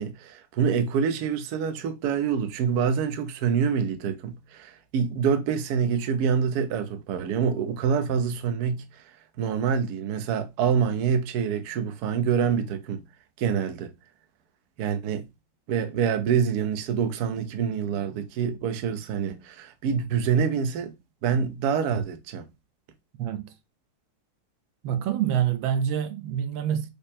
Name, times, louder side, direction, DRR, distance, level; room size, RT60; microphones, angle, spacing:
voice 1, 0.0-9.0 9.4-13.0 13.4-13.9 14.8-15.2 15.7-20.9 21.2-22.5, right 7 dB, 65° right, 1.0 m, -26 dB
voice 2, 23.2-23.5 24.8-26.9, right 9 dB, 85° right, 1.4 m, -26 dB
5.1 x 2.0 x 4.2 m
omnidirectional pair, 2.1 m